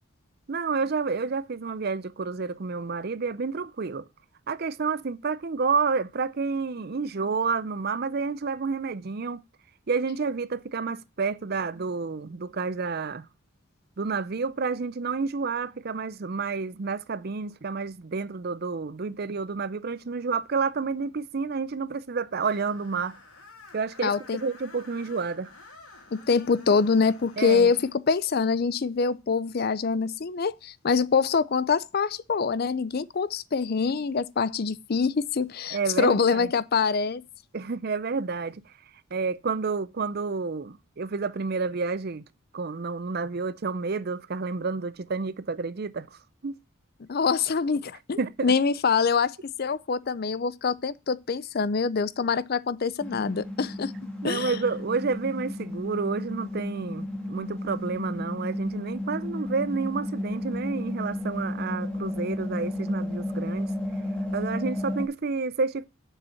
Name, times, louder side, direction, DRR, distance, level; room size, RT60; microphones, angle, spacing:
voice 1, 0.5-4.1 4.5-9.4 9.9-13.2 14.0-23.2 23.7-25.5 27.4-27.7 35.7-36.5 37.5-38.6 39.1-42.2 42.5-46.1 46.4-46.6 48.2-48.5 54.2-63.7 64.3-65.8, right 4 dB, 45° right, 0.5 m, -30 dB
Screech, 22.4-28.0, left 3 dB, 85° left, 2.3 m, -50 dB
voice 2, 24.0-24.4 26.1-27.8 28.1-37.2 47.1-53.9 54.2-54.6, left 5 dB, 45° left, 0.4 m, -25 dB
sound 1, 53.0-65.0, left 1 dB, 5° left, 1.8 m, -33 dB
7.1 x 5.5 x 7.0 m
head